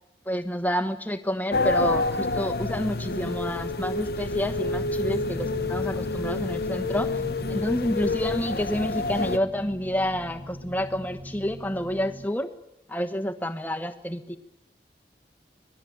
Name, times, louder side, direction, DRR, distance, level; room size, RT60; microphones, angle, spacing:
voice 1, 0.3-7.2 7.5-12.5 12.9-14.4, equal, 10° left, 7 dB, 1.2 m, -29 dB
sound 1, 1.5-9.4, left 3 dB, 60° left, 0.8 m, -28 dB
sound 2, 4.5-12.3, equal, 65° right, 3.6 m, -41 dB
25.0 x 19.0 x 8.7 m, 0.88 s
head